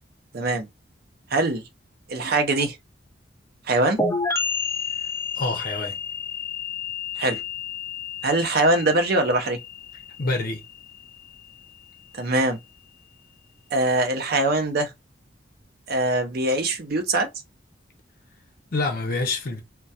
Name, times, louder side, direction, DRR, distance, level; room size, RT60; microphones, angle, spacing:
voice 1, 0.3-0.7 1.3-1.6 2.1-2.8 3.7-4.0 7.2-7.4 8.2-9.6 12.1-12.6 13.7-14.9 15.9-17.3, right 2 dB, 55° right, 0.5 m, -22 dB
sound 1, 4.0-11.5, left 4 dB, 15° left, 0.3 m, -31 dB
voice 2, 5.4-5.9 10.2-10.6 18.7-19.6, left 2 dB, 50° left, 0.6 m, -26 dB
2.2 x 2.2 x 2.7 m
head